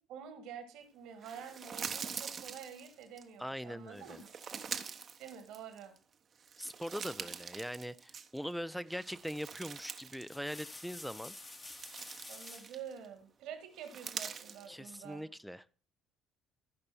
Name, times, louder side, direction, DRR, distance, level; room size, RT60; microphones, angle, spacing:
voice 1, 0.1-4.3 5.2-5.9 12.3-15.3, right 8 dB, 65° right, 8 dB, 1.7 m, -48 dB
sound 1, 1.2-3.2 3.9-6.0 6.4-8.5 8.9-10.3 10.6-10.8 11.4-13.1 13.8-14.7, right 6 dB, 45° right, 1.0 m, -44 dB
voice 2, 3.4-4.2 6.6-11.3 14.7-15.7, equal, ahead, 18 dB, 0.6 m, -41 dB
sound 2, 9.1-9.4 10.1-12.8 14.2-14.9, left 2 dB, 25° left, 1.4 m, -50 dB
14.5 x 5.4 x 4.4 m, 0.37 s
hypercardioid pair, 50°, 0 cm